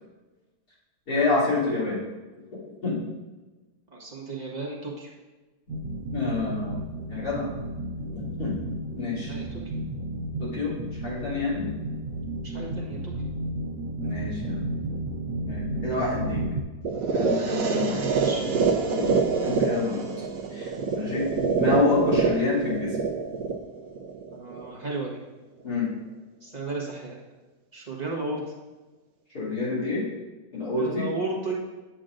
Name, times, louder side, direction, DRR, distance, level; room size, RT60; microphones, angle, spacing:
voice 1, 1.1-2.0 2.8-3.0 6.1-6.8 7.1-7.5 8.0-8.6 9.0-9.3 10.4-11.7 14.0-14.7 15.4-16.4 17.1-18.3 18.9-20.2 20.5-21.3 21.6-23.0 25.6-25.9 29.3-30.0 30.5-31.1, left 3 dB, 65° left, -8 dB, 3.4 m, -28 dB
voice 2, 3.9-5.1 9.2-9.6 12.4-13.1 17.7-18.5 24.3-25.2 26.4-27.2 27.7-28.4 30.8-31.6, right 3 dB, 25° right, -3 dB, 1.4 m, -34 dB
sound 1, 5.7-16.6, right 1 dB, 85° right, 1.5 m, -33 dB
sound 2, 16.8-24.8, right 5 dB, 60° right, 1.1 m, -26 dB
8.8 x 7.4 x 2.6 m, 1.2 s
omnidirectional pair, 1.8 m